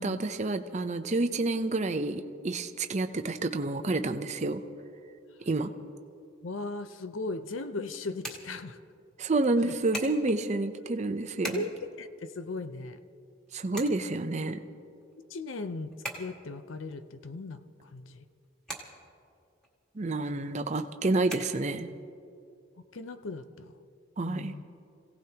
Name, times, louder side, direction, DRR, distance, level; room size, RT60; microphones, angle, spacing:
voice 1, 0.0-4.6 5.5-5.7 9.2-11.6 13.5-14.6 19.9-21.9 24.2-24.5, right 2 dB, 35° right, 8 dB, 0.6 m, -29 dB
sound 1, 4.5-22.1, right 1 dB, 5° left, 1.8 m, -47 dB
voice 2, 6.4-8.8 9.6-9.7 11.4-11.7 12.0-13.0 15.3-18.2 22.9-23.7 24.2-24.6, left 3 dB, 85° left, 11 dB, 0.7 m, -38 dB
27.5 x 17.0 x 2.9 m, 2.5 s
head